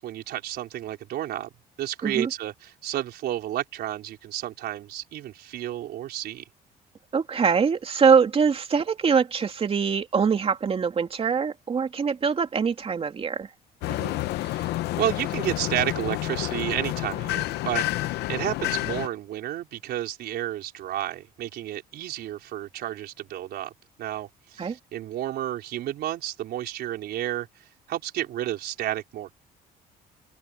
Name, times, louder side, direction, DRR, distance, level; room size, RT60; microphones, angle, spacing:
voice 1, 0.0-1.5 1.8-6.4 13.9-23.7 24.0-27.5 27.9-29.3, right 13 dB, 70° right, 4.2 m, -31 dB
voice 2, 7.1-13.5 24.6-24.8, right 6 dB, 35° right, 2.8 m, -23 dB
sound 1, 13.8-19.1, left 17 dB, 85° left, 0.9 m, -29 dB
open air
cardioid pair, 110°, 17 cm